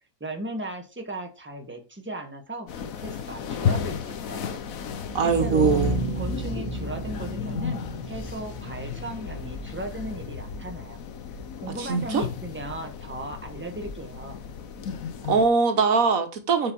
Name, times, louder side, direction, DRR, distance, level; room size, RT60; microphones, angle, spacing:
voice 1, 0.2-4.6 5.2-5.8 6.1-11.0 11.6-14.4, right 1 dB, 10° right, 1.6 m, -36 dB
sound 1, 2.7-15.5, left 7 dB, 80° left, 1.3 m, -34 dB
sound 2, 4.9-10.9, right 1 dB, 40° right, 2.0 m, -33 dB
voice 2, 5.1-6.0 11.8-12.2 15.3-16.7, right 5 dB, 80° right, 1.7 m, -22 dB
8.1 x 5.1 x 4.4 m
omnidirectional pair, 1.4 m